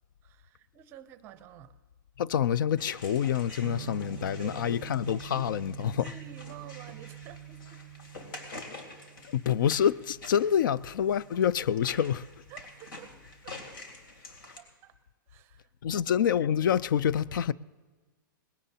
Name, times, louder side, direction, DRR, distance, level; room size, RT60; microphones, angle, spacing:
voice 1, 0.2-1.7 3.8-4.9 5.9-7.8 12.5-13.1 13.4-13.8 14.6-15.0 15.3-16.1, right 9 dB, 20° right, 0.6 m, -51 dB
voice 2, 2.2-6.1 9.3-12.3 15.8-17.5, left 9 dB, 70° left, 0.4 m, -27 dB
sound 1, 2.8-14.6, left 2 dB, 85° left, 3.0 m, -48 dB
sound 2, 3.6-13.4, right 14 dB, 70° right, 0.4 m, -47 dB
20.5 x 17.0 x 2.8 m
supercardioid pair, 170°, 11 cm